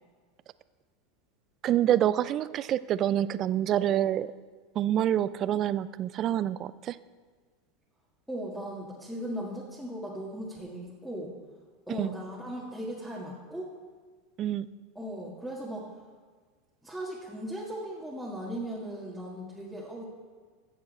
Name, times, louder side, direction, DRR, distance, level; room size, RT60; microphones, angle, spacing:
voice 1, 1.6-4.3 4.8-7.0 12.0-12.1 14.4-14.7, right 11 dB, 40° right, 16 dB, 0.4 m, -27 dB
voice 2, 8.3-11.3 11.9-13.7 15.0-15.9 16.8-20.0, equal, ahead, -7 dB, 1.8 m, -37 dB
15.0 x 7.4 x 4.2 m, 1.5 s
hypercardioid pair, 110°, 0 cm